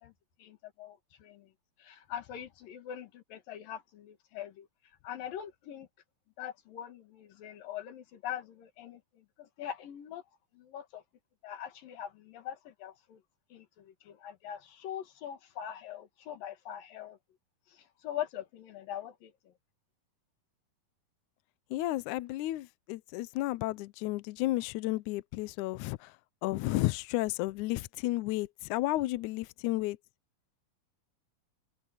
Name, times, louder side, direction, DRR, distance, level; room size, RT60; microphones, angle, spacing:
voice 1, 0.4-1.5 1.8-4.7 5.0-5.9 6.4-10.2 10.5-11.0 11.4-13.2 13.5-17.2 17.7-19.3, left 10 dB, 70° left, 3.5 m, -42 dB
voice 2, 21.7-26.0 26.4-30.0, left 18 dB, 85° left, 1.7 m, -32 dB
omnidirectional pair, 4.2 m